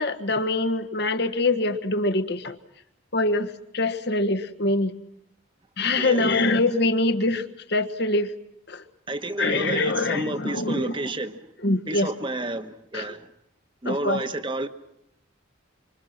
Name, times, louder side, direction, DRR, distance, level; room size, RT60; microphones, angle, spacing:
voice 1, 0.0-2.6 3.1-4.9 5.8-8.3 8.7-8.8 9.4-11.0 11.6-12.1 12.9-13.1 13.8-14.2, left 2 dB, 55° left, 1.5 m, -24 dB
voice 2, 6.0-6.3 9.1-11.4 11.9-13.3 13.8-14.7, right 2 dB, 25° right, 1.3 m, -30 dB
26.0 x 25.5 x 5.9 m
head